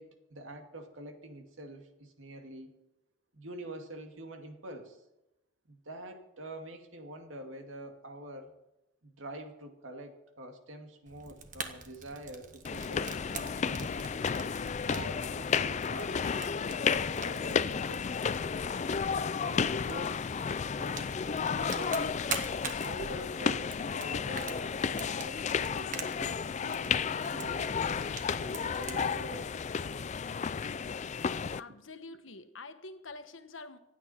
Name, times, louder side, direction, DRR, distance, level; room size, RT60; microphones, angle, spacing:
voice 1, 0.0-2.7 3.3-5.0 5.7-8.5 9.0-14.3 14.8-18.2 19.4-20.2 20.7-22.3 22.8-27.7 28.4-29.6, right 1 dB, 85° right, 2.3 m, -46 dB
Fire, 11.1-29.0, right 5 dB, 40° right, 1.4 m, -46 dB
sound 1, 12.6-31.6, left 6 dB, 35° left, 0.4 m, -32 dB
voice 2, 31.6-33.8, left 3 dB, 80° left, 1.2 m, -46 dB
26.5 x 8.9 x 4.4 m
head